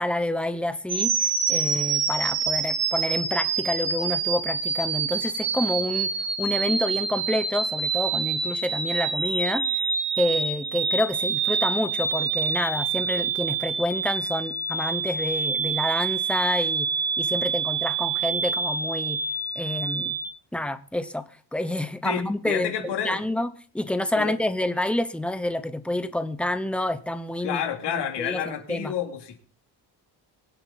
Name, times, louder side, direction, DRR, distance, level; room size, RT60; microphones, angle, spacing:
voice 1, 0.0-9.8 10.2-16.9 17.2-19.2 19.6-20.2 20.5-21.2 21.5-27.6 27.9-28.9, left 1 dB, 5° left, 0.8 m, -28 dB
sound 1, 0.9-20.3, right 5 dB, 35° right, 2.5 m, -27 dB
voice 2, 22.0-23.2 24.1-24.3 27.4-29.4, left 8 dB, 70° left, 3.1 m, -30 dB
23.5 x 8.0 x 4.1 m
cardioid pair, 170°, 42 cm